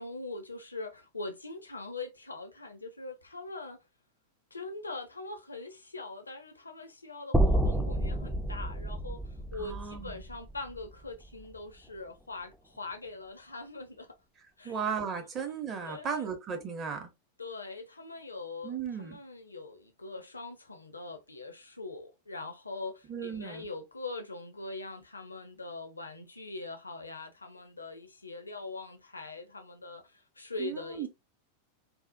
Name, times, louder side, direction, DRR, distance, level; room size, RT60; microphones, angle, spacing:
voice 1, 0.0-3.8 4.5-9.2 9.5-14.1 14.6-14.8 15.8-16.2 17.4-31.1, left 3 dB, 80° left, 0.5 m, -42 dB
sound 1, 7.3-11.5, right 1 dB, 5° right, 0.3 m, -30 dB
voice 2, 9.6-10.2 14.6-17.1 18.6-19.2 23.1-23.7 30.6-31.1, right 7 dB, 30° right, 0.7 m, -36 dB
2.7 x 2.0 x 2.5 m
figure-of-eight pair, 90°, 0 cm